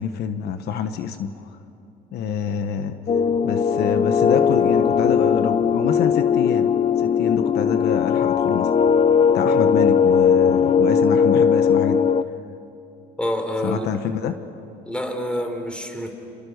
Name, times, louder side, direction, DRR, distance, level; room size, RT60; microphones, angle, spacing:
voice 1, 0.0-1.3 2.1-2.9 3.4-6.7 7.0-8.7 9.3-12.0 13.6-14.4, left 8 dB, 75° left, 9 dB, 1.3 m, -26 dB
sound 1, 3.1-12.2, left 7 dB, 35° left, 0.7 m, -18 dB
voice 2, 13.2-13.9 14.9-16.1, left 1 dB, 5° left, 5 dB, 3.8 m, -27 dB
29.5 x 28.0 x 6.7 m, 2.7 s
cardioid pair, 110°, 17 cm